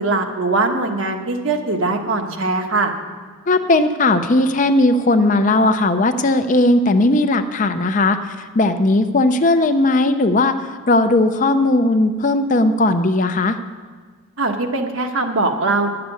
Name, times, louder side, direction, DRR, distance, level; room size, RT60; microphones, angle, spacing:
voice 1, 0.0-2.9 14.4-15.9, right 3 dB, 70° right, 3 dB, 1.3 m, -21 dB
voice 2, 3.5-8.2 8.5-10.5 10.9-13.6, left 2 dB, 35° left, 9 dB, 0.6 m, -17 dB
11.0 x 6.8 x 9.0 m, 1.5 s
head